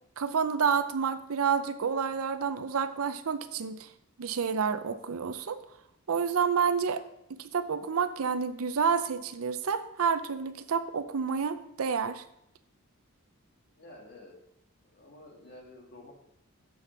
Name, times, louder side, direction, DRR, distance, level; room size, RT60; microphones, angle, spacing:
voice 1, 0.2-3.9 4.2-5.6 6.1-7.0 7.3-12.2, right 6 dB, 75° right, 11 dB, 0.5 m, -29 dB
voice 2, 13.8-14.4 14.8-16.1, left 2 dB, 45° left, 1 dB, 1.8 m, -50 dB
7.5 x 6.3 x 5.7 m, 0.79 s
head